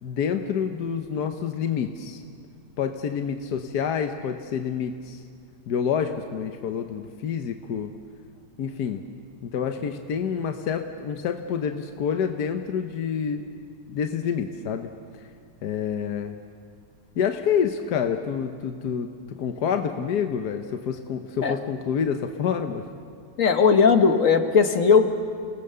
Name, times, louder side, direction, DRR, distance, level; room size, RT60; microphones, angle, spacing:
voice 1, 0.0-2.2 2.8-5.2 5.7-7.9 8.6-9.0 9.4-13.4 13.9-15.3 15.6-16.4 17.2-22.8, left 7 dB, 70° left, 5 dB, 1.5 m, -28 dB
voice 2, 23.4-25.1, left 5 dB, 55° left, 7 dB, 1.6 m, -18 dB
30.0 x 18.5 x 6.9 m, 2.2 s
omnidirectional pair, 1.8 m